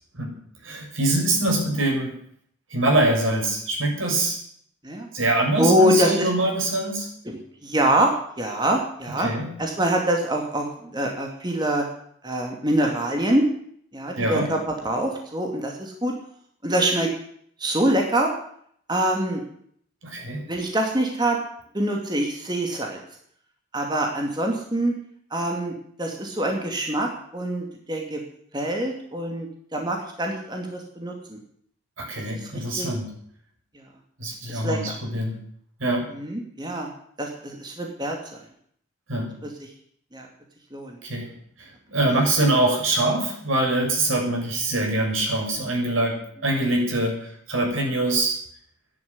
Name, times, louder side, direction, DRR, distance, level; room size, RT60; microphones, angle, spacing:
voice 1, 0.6-2.1 2.7-4.4 5.1-7.1 9.2-9.5 14.2-14.5 20.0-20.5 32.0-33.1 34.2-35.4 35.8-36.1 39.1-39.4 41.0-48.3, right 2 dB, 80° right, 0 dB, 6.5 m, -24 dB
voice 2, 5.6-6.3 7.3-8.1 8.4-9.3 9.6-11.8 12.2-13.5 13.9-16.1 16.6-17.1 17.6-18.3 18.9-19.4 20.5-21.4 21.7-23.0 23.7-24.9 25.3-28.2 28.5-31.4 32.3-32.9 34.5-35.0 36.1-36.9 37.2-38.4 40.1-40.3 40.7-41.0, right 1 dB, 20° right, 1 dB, 2.4 m, -25 dB
14.0 x 10.5 x 9.6 m, 0.64 s
head